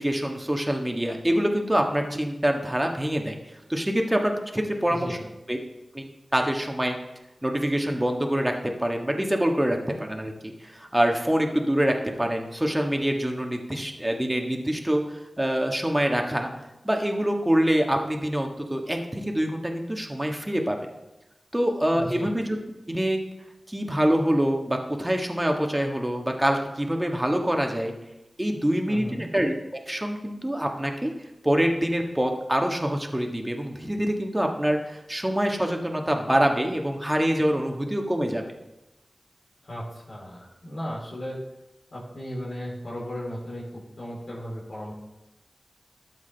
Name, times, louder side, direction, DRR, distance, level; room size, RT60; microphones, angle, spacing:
voice 1, 0.0-3.4 3.7-5.2 5.5-5.6 5.9-7.0 7.4-16.5 16.8-20.9 21.5-22.6 22.9-23.2 23.7-27.9 28.4-29.5 29.9-31.1 31.4-38.5, equal, 15° right, 2 dB, 1.5 m, -25 dB
voice 2, 4.9-5.2 21.9-22.3 28.9-29.3 39.6-41.4 41.9-44.9, equal, 70° left, -7 dB, 3.1 m, -36 dB
12.5 x 7.4 x 3.4 m, 0.99 s
wide cardioid pair, 55°, 0 cm